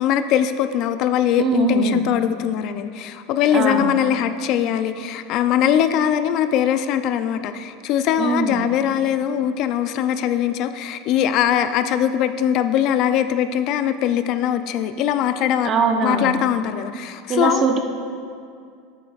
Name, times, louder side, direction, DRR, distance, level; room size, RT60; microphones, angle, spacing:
voice 1, 0.0-15.7 16.0-17.7, left 10 dB, 50° left, 10 dB, 0.3 m, -21 dB
voice 2, 1.4-2.0 3.5-3.9 8.2-8.6 15.6-16.3 17.3-17.8, right 4 dB, 30° right, 5 dB, 0.7 m, -21 dB
9.7 x 8.3 x 2.4 m, 2.4 s
supercardioid pair, 130°, 0 cm